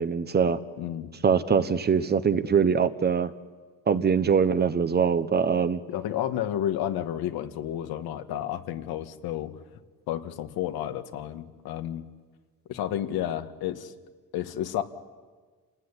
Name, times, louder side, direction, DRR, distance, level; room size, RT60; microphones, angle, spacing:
voice 1, 0.0-0.6 1.2-3.3 3.9-5.8, right 6 dB, 25° right, 13 dB, 1.0 m, -23 dB
voice 2, 0.8-1.1 5.9-9.6 10.1-12.1 12.7-13.9 14.3-14.8, left 11 dB, 80° left, 8 dB, 1.9 m, -31 dB
28.0 x 19.5 x 9.9 m, 1.4 s
cardioid pair, 150°, 36 cm